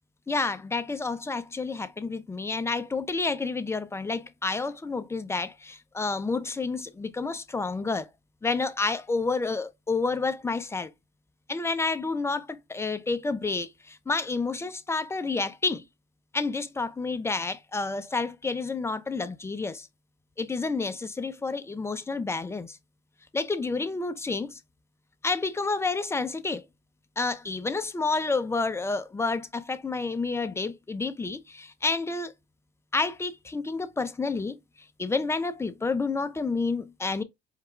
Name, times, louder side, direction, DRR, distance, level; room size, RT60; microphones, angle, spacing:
voice 1, 0.3-8.1 8.4-10.9 11.5-15.8 16.3-19.9 20.4-22.8 23.3-24.6 25.2-26.6 27.2-32.3 32.9-34.6 35.0-37.2, left 3 dB, 15° left, 0.5 m, -29 dB
4.8 x 2.4 x 3.2 m
cardioid pair, 110°, 17 cm